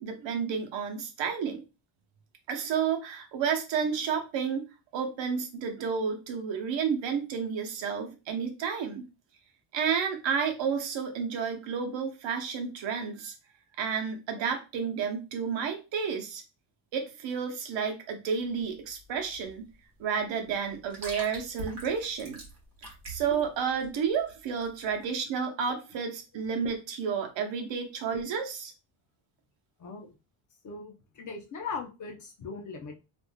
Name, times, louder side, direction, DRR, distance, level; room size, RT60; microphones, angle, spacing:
voice 1, 0.0-1.6 2.5-4.7 4.9-9.0 9.7-13.3 13.8-16.4 16.9-19.7 20.0-22.4 23.1-28.7, right 6 dB, 60° right, 3 dB, 0.9 m, -31 dB
sound 1, 18.4-25.1, right 2 dB, 30° right, 1.2 m, -45 dB
voice 2, 29.8-30.2 30.6-33.0, left 4 dB, 35° left, 3 dB, 0.7 m, -39 dB
3.3 x 2.6 x 2.2 m, 0.29 s
cardioid pair, 125°, 50 cm